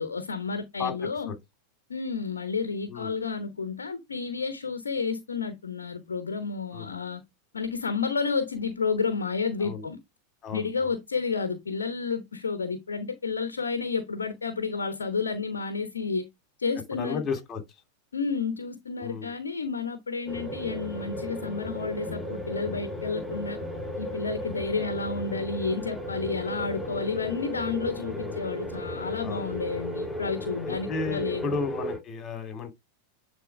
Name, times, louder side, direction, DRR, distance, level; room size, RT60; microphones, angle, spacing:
voice 1, 0.0-1.3 1.9-7.2 7.5-10.0 10.5-16.3 16.6-17.2 18.1-23.6 24.0-31.5, left 5 dB, 70° left, 1.1 m, -31 dB
voice 2, 0.8-1.3 2.9-3.1 6.7-6.9 9.6-9.9 10.4-10.9 16.9-17.6 19.0-19.3 27.8-28.4 29.2-29.5 30.6-32.7, left 5 dB, 25° left, 2.8 m, -34 dB
sound 1, 20.3-32.0, equal, ahead, 5.8 m, -35 dB
10.0 x 4.1 x 3.4 m
figure-of-eight pair, 90°, 0 cm